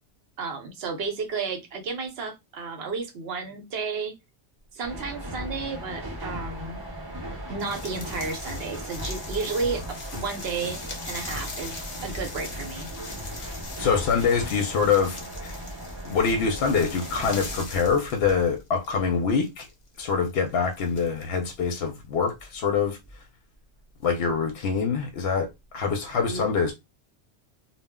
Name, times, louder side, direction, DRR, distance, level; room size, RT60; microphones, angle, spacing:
voice 1, 0.4-4.1 4.7-6.8 7.5-9.8 10.1-10.8 11.0-11.7 12.0-12.9 26.3-26.5, right 4 dB, 65° right, 0.9 m, -32 dB
sound 1, 4.8-17.6, equal, 25° right, 0.7 m, -37 dB
sound 2, 7.6-18.9 19.3-21.5 22.3-22.4 23.0-23.2, left 2 dB, 35° left, 0.6 m, -40 dB
voice 2, 13.3-15.6 16.0-19.7 20.0-23.0 24.0-25.5 25.7-26.7, left 5 dB, 65° left, 0.7 m, -25 dB
2.1 x 2.0 x 3.5 m
omnidirectional pair, 1.2 m